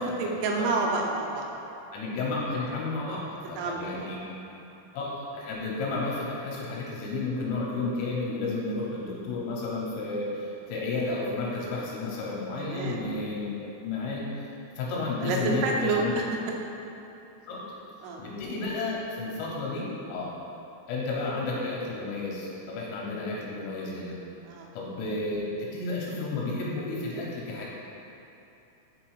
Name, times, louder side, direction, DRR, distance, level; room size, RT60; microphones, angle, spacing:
voice 1, 0.0-1.5 3.6-4.1 12.3-13.0 15.2-16.2 18.0-18.2 24.5-24.7, right 3 dB, 80° right, -1 dB, 3.1 m, -29 dB
voice 2, 1.9-4.2 4.9-13.5 13.8-14.2 14.8-16.1 17.5-17.6 18.2-20.3 20.9-24.2 24.7-27.7, left 3 dB, 80° left, -4 dB, 3.4 m, -32 dB
7.4 x 4.1 x 4.8 m, 2.8 s
omnidirectional pair, 6.0 m